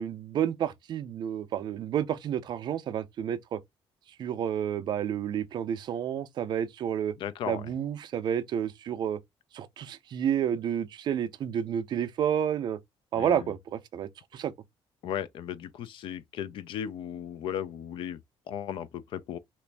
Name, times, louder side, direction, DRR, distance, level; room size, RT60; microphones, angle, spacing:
voice 1, 0.0-3.6 4.2-7.1 7.5-9.2 9.5-12.8 13.1-14.5, right 9 dB, 45° right, 0.4 m, -30 dB
voice 2, 7.2-7.7 13.1-13.5 15.0-18.2 18.5-19.4, left 9 dB, 55° left, 0.4 m, -36 dB
3.0 x 2.5 x 3.2 m
cardioid pair, 180°, 10 cm